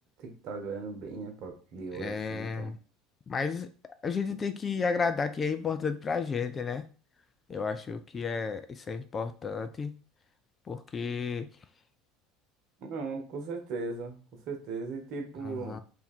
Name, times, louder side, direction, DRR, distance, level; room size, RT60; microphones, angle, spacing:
voice 1, 0.2-2.7 4.3-4.4 12.8-15.8, right 4 dB, 55° right, 4 dB, 1.1 m, -38 dB
voice 2, 1.9-2.8 3.3-3.7 4.0-6.9 7.5-9.9 10.7-11.5 15.5-15.8, left 5 dB, 30° left, 10 dB, 0.5 m, -32 dB
3.5 x 2.7 x 4.3 m, 0.37 s
hypercardioid pair, 70°, 0 cm